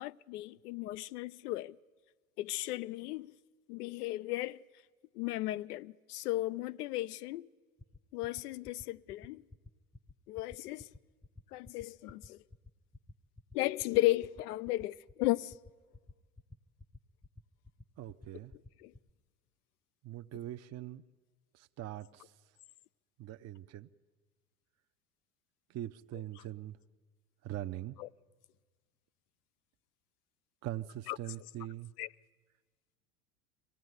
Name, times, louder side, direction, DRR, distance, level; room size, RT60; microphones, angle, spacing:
voice 1, 0.0-1.8 2.4-3.3 3.7-4.6 5.1-7.5 8.1-9.4 10.3-10.9 11.5-12.4 13.5-15.5 18.8-18.9 28.0-28.1 31.1-31.2 32.0-32.1, left 18 dB, 75° left, 0.6 m, -35 dB
sound 1, 7.8-19.1, left 2 dB, 5° left, 0.7 m, -52 dB
voice 2, 18.0-18.5 20.0-21.0 21.5-22.3 23.2-23.9 25.7-26.8 27.4-28.0 30.6-31.9, right 13 dB, 35° right, 0.6 m, -42 dB
24.5 x 16.5 x 9.5 m
hypercardioid pair, 75°, 46 cm